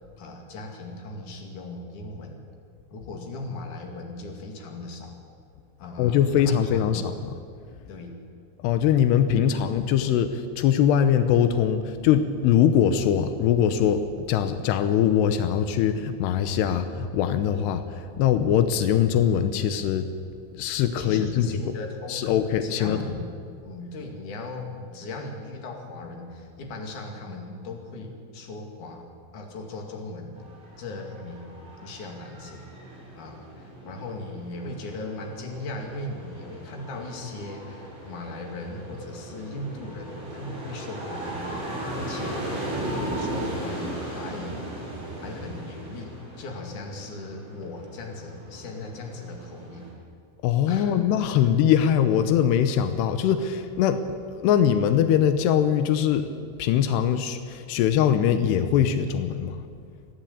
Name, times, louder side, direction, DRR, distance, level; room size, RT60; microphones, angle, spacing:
voice 1, 0.2-2.4 2.9-5.2 5.8-6.2 6.5-7.1 7.9-8.1 9.3-9.4 21.0-22.3 22.6-23.3 23.6-29.1 29.3-30.3 30.8-32.7 33.2-41.6 41.9-42.4 42.9-44.8 45.1-49.9 50.7-51.0, left 2 dB, 55° left, 2 dB, 3.5 m, -38 dB
voice 2, 6.0-7.3 8.6-20.1 20.5-21.8 22.1-23.0 50.4-54.0 54.3-56.3 56.6-59.6, left 9 dB, 90° left, 10 dB, 3.0 m, -22 dB
sound 1, 30.4-49.9, right 1 dB, 10° right, 4.5 m, -37 dB
28.0 x 11.0 x 8.6 m, 2.2 s
omnidirectional pair, 4.7 m